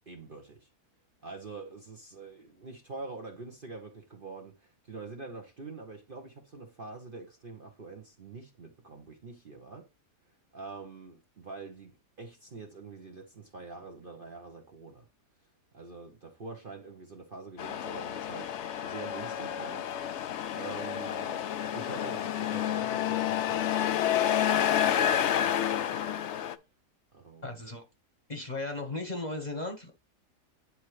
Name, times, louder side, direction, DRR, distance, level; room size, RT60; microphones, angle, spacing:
voice 1, 0.1-0.7 1.2-9.9 10.5-15.1 15.7-18.5 18.8-19.9 20.5-21.5 21.7-26.1 27.1-27.6, right 3 dB, 40° right, 0.9 m, -45 dB
Truck, 17.6-26.6, left 10 dB, 65° left, 0.7 m, -29 dB
voice 2, 27.4-27.8 28.3-29.9, left 2 dB, 30° left, 1.0 m, -36 dB
9.8 x 4.2 x 3.2 m
omnidirectional pair, 1.7 m